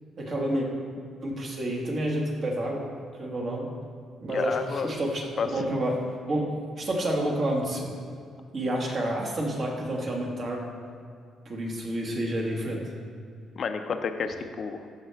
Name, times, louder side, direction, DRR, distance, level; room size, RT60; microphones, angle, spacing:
voice 1, 0.2-0.7 1.2-3.7 4.2-6.0 6.3-7.9 8.5-10.7 11.4-12.8, right 1 dB, 45° right, -1 dB, 1.7 m, -29 dB
voice 2, 4.3-4.9 5.4-5.5 13.6-14.9, left 5 dB, 50° left, 8 dB, 0.6 m, -30 dB
14.0 x 5.6 x 3.5 m, 2.2 s
cardioid pair, 130°, 0 cm